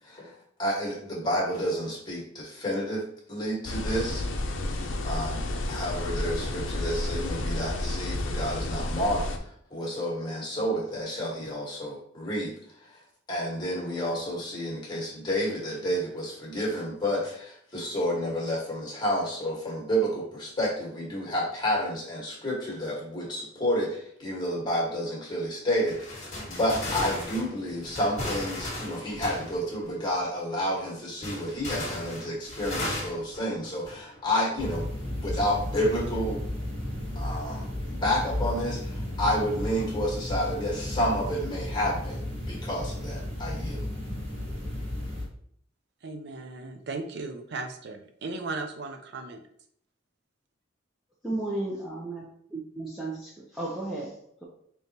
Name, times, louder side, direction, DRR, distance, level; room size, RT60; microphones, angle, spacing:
voice 1, 0.0-3.0 3.3-4.2 5.0-5.4 5.7-12.5 12.8-13.0 13.3-34.9 35.2-36.4 37.1-43.9, equal, 25° left, -3 dB, 1.4 m, -30 dB
sound 1, 3.7-9.4, left 1 dB, 75° left, 0.6 m, -31 dB
sound 2, 25.9-30.0 31.2-34.3 34.7-34.8 35.8-36.2, left 1 dB, 40° left, 1.4 m, -36 dB
sound 3, 34.6-45.2, left 1 dB, 30° right, 1.6 m, -33 dB
voice 2, 46.0-49.4, right 3 dB, 60° right, 6 dB, 0.5 m, -36 dB
voice 3, 51.2-52.2 52.5-54.4, right 2 dB, ahead, -6 dB, 0.7 m, -34 dB
5.1 x 3.0 x 2.8 m, 0.66 s
head